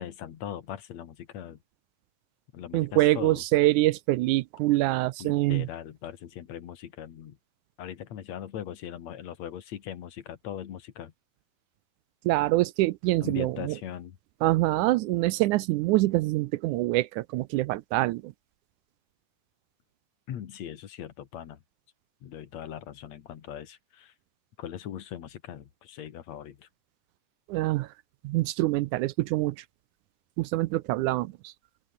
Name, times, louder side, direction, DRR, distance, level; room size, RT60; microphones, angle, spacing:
voice 1, 0.0-1.6 2.5-3.4 5.2-7.4 7.8-11.1 13.2-14.2 20.3-21.6 22.2-24.1 24.6-26.7, left 10 dB, 60° left, 2.6 m, -40 dB
voice 2, 2.7-5.7 12.2-13.8 14.4-18.3 27.5-27.9 28.2-29.6 30.4-31.5, right 18 dB, 80° right, 1.9 m, -25 dB
open air
omnidirectional pair, 3.8 m